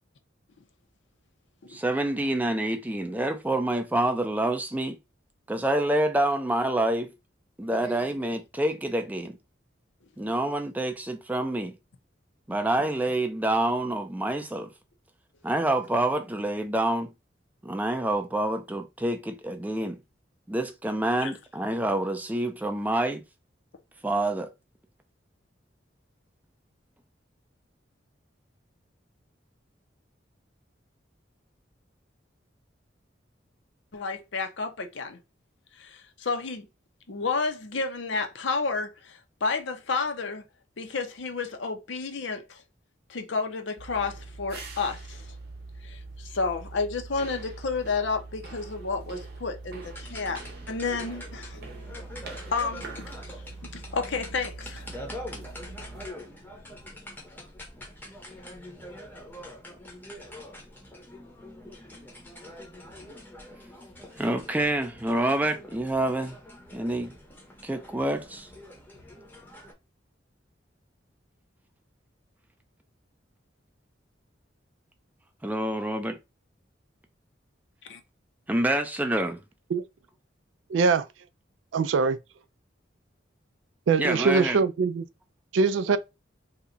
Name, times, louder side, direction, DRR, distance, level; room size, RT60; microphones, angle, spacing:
voice 1, 1.7-5.0 5.5-7.1 7.6-9.4 10.2-11.7 12.5-14.7 15.4-17.1 17.6-20.0 20.5-23.2 24.0-24.5 64.2-66.4 66.7-67.1 67.6-68.5 75.4-76.2 78.5-79.4 84.0-84.6, right 1 dB, 10° right, 0.4 m, -27 dB
voice 2, 33.9-35.2 35.7-36.7 37.1-40.4 40.8-42.6 43.1-45.2 45.8-50.4 50.7-52.0 52.5-53.1 53.6-54.9 77.9-78.0, left 4 dB, 70° left, 0.7 m, -31 dB
sound 1, 43.8-56.1, right 3 dB, 55° right, 0.7 m, -43 dB
sound 2, 49.8-69.7, left 1 dB, 10° left, 0.8 m, -44 dB
voice 3, 80.7-81.1 81.7-82.2 83.9-85.1 85.5-86.0, right 4 dB, 75° right, 0.3 m, -22 dB
2.8 x 2.2 x 3.8 m
head